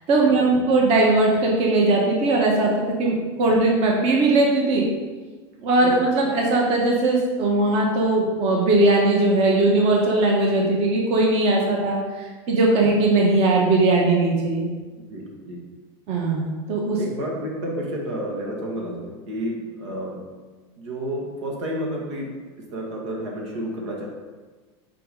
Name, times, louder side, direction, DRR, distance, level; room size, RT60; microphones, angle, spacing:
voice 1, 0.1-4.9 5.6-14.7 16.1-17.0, right 2 dB, 45° right, -1 dB, 1.4 m, -19 dB
voice 2, 14.9-15.6 17.0-20.2 20.8-22.4 22.7-24.1, equal, 90° right, -2 dB, 2.0 m, -31 dB
5.7 x 5.0 x 5.4 m, 1.4 s
supercardioid pair, 140°, 15 cm